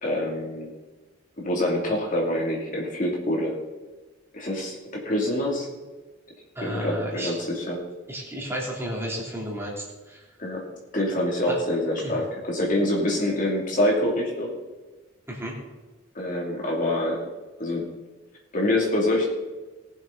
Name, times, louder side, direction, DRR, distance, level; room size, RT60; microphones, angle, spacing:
voice 1, 0.0-0.7 1.4-3.6 4.3-5.7 6.6-7.8 10.4-10.6 10.9-14.6 16.1-17.2 17.6-17.9 18.5-19.2, left 1 dB, 40° left, -2 dB, 2.6 m, -26 dB
voice 2, 6.5-7.4 8.1-10.2 11.5-11.6 12.0-12.1 15.3-15.6, equal, 15° right, -4 dB, 3.1 m, -32 dB
20.0 x 7.3 x 3.9 m, 1.2 s
head